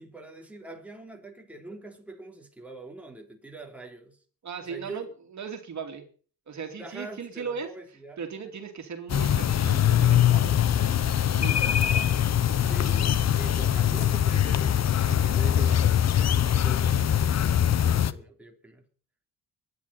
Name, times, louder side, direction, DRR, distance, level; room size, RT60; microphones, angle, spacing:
voice 1, 0.0-4.2 4.6-5.1 6.8-8.2 12.6-18.8, right 3 dB, 5° right, 3.4 m, -44 dB
voice 2, 4.4-5.1 5.3-6.0 6.5-7.7 8.2-10.7 11.0-12.0, right 6 dB, 50° right, 2.8 m, -38 dB
sound 1, 9.1-18.1, left 10 dB, 50° left, 0.9 m, -22 dB
24.0 x 10.0 x 4.3 m
cardioid pair, 90°, 35 cm